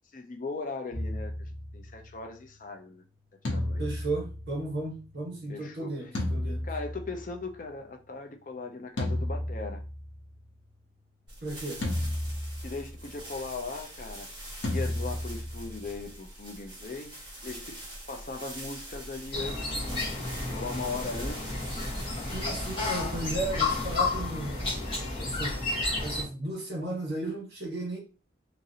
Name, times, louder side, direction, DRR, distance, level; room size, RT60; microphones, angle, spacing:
voice 1, 0.1-3.0 3.5-3.8 5.5-6.0 6.6-9.8 12.6-14.3 14.6-17.8 18.1-20.1 20.5-21.6, left 3 dB, 45° left, 0.4 m, -39 dB
sound 1, 0.9-2.2 3.4-5.1 6.1-7.5 9.0-10.3 11.8-13.0 14.6-16.1, left 1 dB, 75° left, 0.9 m, -33 dB
voice 2, 3.8-6.6 11.4-11.8 22.3-24.6 25.2-25.6 26.0-28.0, right 2 dB, 60° right, 1.2 m, -34 dB
sound 2, 11.3-24.4, right 1 dB, 25° right, 1.2 m, -43 dB
sound 3, 19.3-26.2, left 3 dB, 30° left, 1.2 m, -31 dB
2.9 x 2.6 x 2.8 m
head